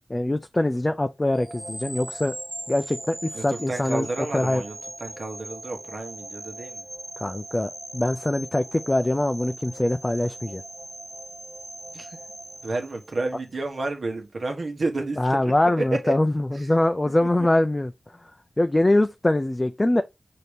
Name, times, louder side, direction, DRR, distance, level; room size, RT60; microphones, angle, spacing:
voice 1, 0.1-2.3 2.7-4.1 4.3-4.6 7.2-10.6 15.2-17.9 18.6-20.0, left 1 dB, 25° left, 0.3 m, -23 dB
sound 1, 1.3-13.5, right 1 dB, 20° right, 0.8 m, -40 dB
voice 2, 3.3-6.9 11.9-12.2 12.6-15.4 15.6-16.1 16.5-16.7 17.4-17.5, right 2 dB, 75° right, 1.1 m, -31 dB
5.9 x 2.7 x 3.3 m
wide cardioid pair, 65°, 0 cm